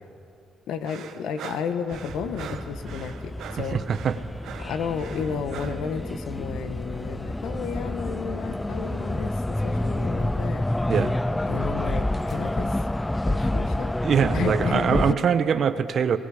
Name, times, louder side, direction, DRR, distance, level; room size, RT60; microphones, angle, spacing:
voice 1, 0.7-3.8 4.6-10.6 11.4-12.8 13.2-14.0 14.3-15.2, left 6 dB, 80° left, 9 dB, 1.4 m, -32 dB
sound 1, 0.8-5.9, right 8 dB, 80° right, 1.3 m, -42 dB
sound 2, 1.9-15.1, left 1 dB, 10° left, 0.4 m, -28 dB
voice 2, 3.7-4.1 10.9-11.1 14.0-16.2, right 7 dB, 60° right, 10 dB, 1.1 m, -23 dB
sound 3, 6.1-8.1 8.5-9.4 9.8-10.6 11.0-11.1 11.9-12.0 12.2-12.5 13.0-13.2 13.7-13.8, left 1 dB, 35° left, 2.5 m, -48 dB
29.5 x 20.0 x 5.1 m, 2.5 s
cardioid pair, 90°, 0 cm